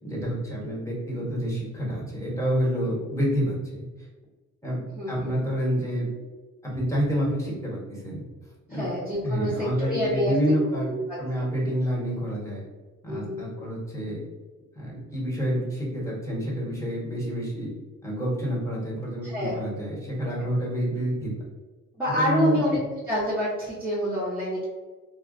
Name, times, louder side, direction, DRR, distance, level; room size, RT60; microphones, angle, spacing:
voice 1, 0.0-3.8 4.6-4.8 5.1-6.1 6.6-8.2 8.7-8.9 9.2-10.9 11.2-12.6 13.0-14.2 14.7-17.7 18.0-21.3 22.1-22.8, equal, 10° left, -5 dB, 1.4 m, -28 dB
voice 2, 4.9-5.3 8.7-10.5 10.8-11.2 13.1-13.4 19.2-19.5 20.4-20.5 22.0-22.8 23.1-24.6, equal, 5° right, -10 dB, 0.9 m, -27 dB
2.4 x 2.3 x 3.9 m, 1.3 s
cardioid pair, 90°, 30 cm